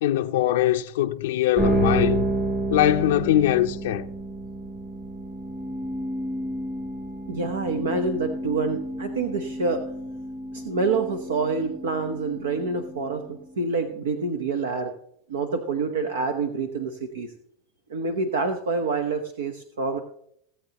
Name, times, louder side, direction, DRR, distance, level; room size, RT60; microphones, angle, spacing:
voice 1, 0.0-2.3 2.7-4.1, left 13 dB, 80° left, 0.5 m, -22 dB
sound 1, 1.6-13.9, right 2 dB, 35° right, 3.7 m, -30 dB
voice 2, 7.3-9.8 10.5-14.9 15.3-17.3 17.9-20.0, right 4 dB, 90° right, 1.0 m, -27 dB
17.5 x 8.3 x 2.9 m
hypercardioid pair, 110°, 0 cm